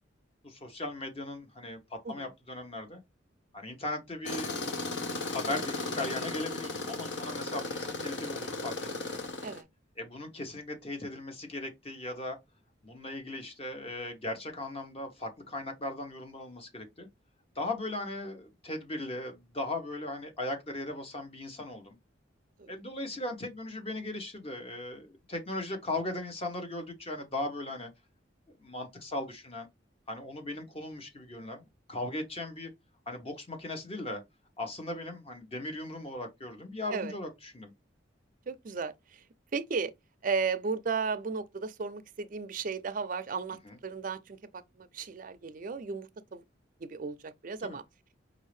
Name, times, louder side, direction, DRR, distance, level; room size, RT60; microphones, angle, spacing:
voice 1, 0.4-1.8 2.1-3.0 3.5-4.5 5.3-9.1 10.0-12.4 12.8-17.1 17.6-22.0 22.7-27.9 28.6-29.7 30.1-31.6 31.9-32.7 33.1-34.2 34.6-37.7 43.6-43.8 47.6-47.8, left 2 dB, 30° left, 0.9 m, -38 dB
Tools, 4.2-9.6, left 3 dB, 70° left, 0.9 m, -36 dB
voice 2, 38.5-39.2 39.5-39.9 40.2-44.4 44.8-46.4 46.8-47.8, right 5 dB, 45° right, 0.4 m, -35 dB
5.0 x 2.7 x 3.1 m
head